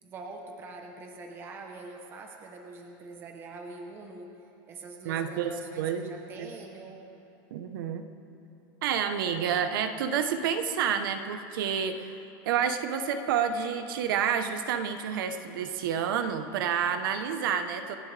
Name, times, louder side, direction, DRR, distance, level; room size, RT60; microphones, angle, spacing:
voice 1, 0.0-4.4 4.7-7.0, right 3 dB, 20° right, 2 dB, 1.0 m, -44 dB
voice 2, 5.0-6.1 6.4-6.5 7.5-8.1 8.8-12.2 12.4-18.0, right 7 dB, 70° right, 8 dB, 1.1 m, -29 dB
27.5 x 11.0 x 3.4 m, 2.9 s
supercardioid pair, 180°, 12 cm